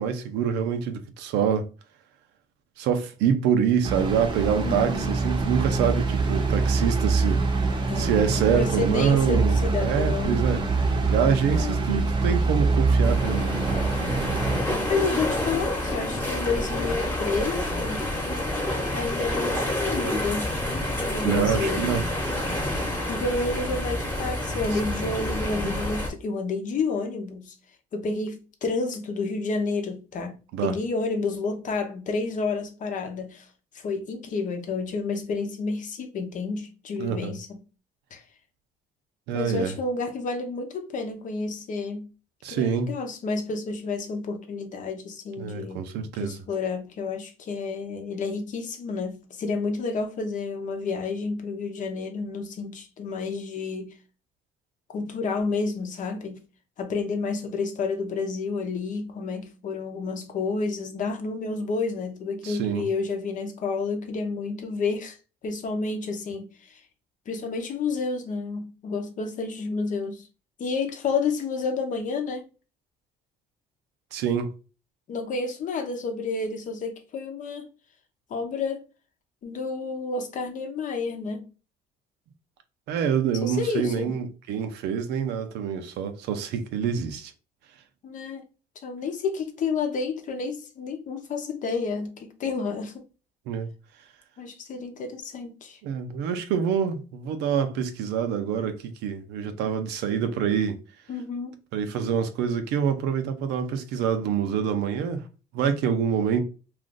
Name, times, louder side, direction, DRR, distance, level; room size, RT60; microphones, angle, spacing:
voice 1, 0.0-1.7 2.8-7.4 8.0-10.6 11.1-13.8 21.2-22.0 30.5-30.7 37.0-37.4 39.3-39.7 42.4-42.9 45.4-46.4 62.4-62.9 74.1-74.5 82.9-87.3 93.5-93.7 95.8-100.8 101.7-105.2 105.5-106.4, right 7 dB, 85° right, 0.5 m, -26 dB
sound 1, 3.8-14.6, right 4 dB, 25° right, 0.7 m, -24 dB
voice 2, 4.6-5.1 7.9-10.4 11.6-11.8 14.9-18.1 18.9-20.5 21.0-21.9 23.1-27.5 27.9-33.4 33.7-37.5 38.1-38.2 39.3-42.1 42.5-45.8 46.1-53.9 54.9-56.4 56.8-65.2 65.4-66.8 67.3-70.3 70.6-72.5 75.1-77.7 78.3-78.8 79.4-81.4 83.4-84.1 88.0-88.4 88.8-92.9 94.4-95.8 101.1-101.5, left 4 dB, 50° left, 0.7 m, -30 dB
sound 2, 13.0-26.1, left 1 dB, 10° left, 1.0 m, -28 dB
2.5 x 2.4 x 3.6 m
cardioid pair, 110°, 17 cm